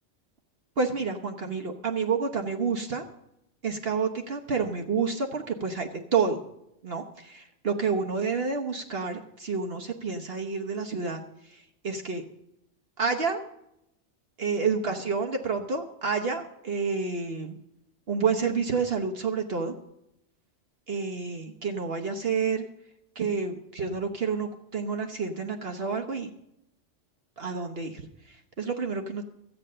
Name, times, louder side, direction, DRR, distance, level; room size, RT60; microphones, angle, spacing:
voice 1, 0.8-3.0 3.6-6.4 6.8-12.3 13.0-13.4 14.4-17.5 18.1-19.7 20.9-22.7 23.1-26.3 27.4-29.2, right 5 dB, 55° right, 4 dB, 1.2 m, -29 dB
13.5 x 8.9 x 6.6 m, 0.80 s
omnidirectional pair, 1.3 m